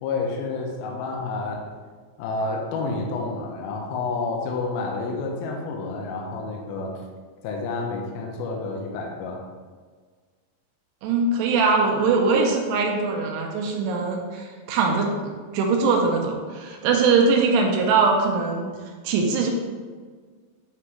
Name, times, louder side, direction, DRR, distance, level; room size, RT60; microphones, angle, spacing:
voice 1, 0.0-1.7 2.2-7.0 7.4-9.4, left 3 dB, 80° left, 0 dB, 2.2 m, -29 dB
voice 2, 11.0-18.7 19.0-19.5, right 4 dB, 80° right, 1 dB, 2.6 m, -22 dB
8.7 x 3.8 x 3.2 m, 1.6 s
omnidirectional pair, 5.1 m